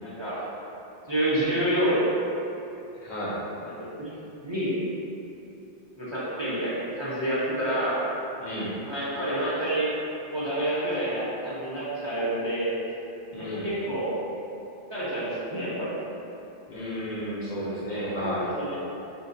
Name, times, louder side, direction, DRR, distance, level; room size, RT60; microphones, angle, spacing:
voice 1, 0.0-0.5 1.1-2.0 3.6-4.1 4.4-4.7 6.0-8.0 8.8-9.9 10.3-12.7 13.3-14.1 14.9-15.9 18.2-18.3 18.6-18.8, right 1 dB, 35° right, -11 dB, 0.6 m, -28 dB
voice 2, 3.0-3.4 8.4-8.8 13.3-13.7 16.7-18.5, equal, 55° left, -7 dB, 0.6 m, -32 dB
3.7 x 2.3 x 2.5 m, 2.8 s
omnidirectional pair, 1.0 m